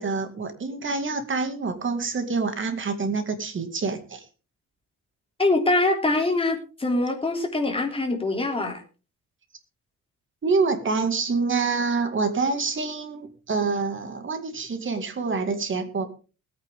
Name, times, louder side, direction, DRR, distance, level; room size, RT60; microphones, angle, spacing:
voice 1, 0.0-4.2 10.4-16.1, right 4 dB, 40° right, 8 dB, 2.2 m, -26 dB
voice 2, 5.4-8.8, left 2 dB, 15° left, 3 dB, 3.2 m, -24 dB
20.0 x 9.2 x 3.7 m, 0.34 s
cardioid pair, 140°, 32 cm